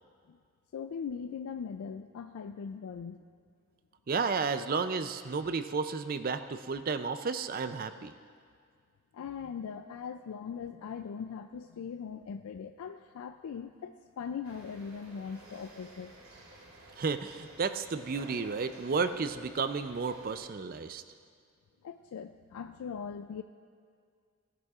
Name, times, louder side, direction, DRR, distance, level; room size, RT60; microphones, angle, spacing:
voice 1, 0.7-3.2 9.1-16.1 21.8-23.4, left 6 dB, 80° left, 8 dB, 0.3 m, -40 dB
voice 2, 4.1-8.1 17.0-21.0, right 5 dB, 40° right, 11 dB, 0.4 m, -32 dB
sound 1, 14.4-20.4, right 2 dB, 80° right, 2.3 m, -53 dB
17.0 x 11.0 x 2.4 m, 2.1 s
head